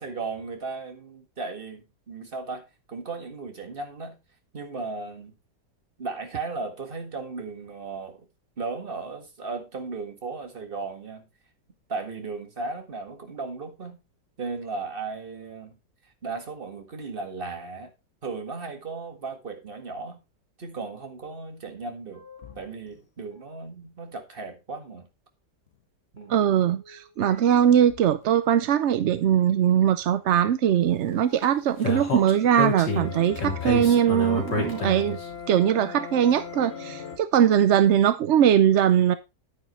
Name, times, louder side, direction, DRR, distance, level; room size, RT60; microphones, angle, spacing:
voice 1, 0.0-4.2 4.5-5.3 6.0-8.3 8.6-11.2 11.9-14.0 14.4-15.8 16.2-17.9 18.2-20.2 20.6-22.3 22.6-25.1 26.1-26.5, right 4 dB, 30° right, 1.8 m, -36 dB
sound 1, 22.1-23.0 23.3-23.4 25.7-25.8 26.2-28.3 30.8-37.2, left 6 dB, 40° left, 1.5 m, -40 dB
voice 2, 26.3-35.2 35.5-39.1, right 9 dB, 70° right, 0.6 m, -21 dB
Speech, 31.8-35.2, left 3 dB, 85° left, 3.3 m, -28 dB
9.7 x 9.2 x 3.1 m
omnidirectional pair, 1.9 m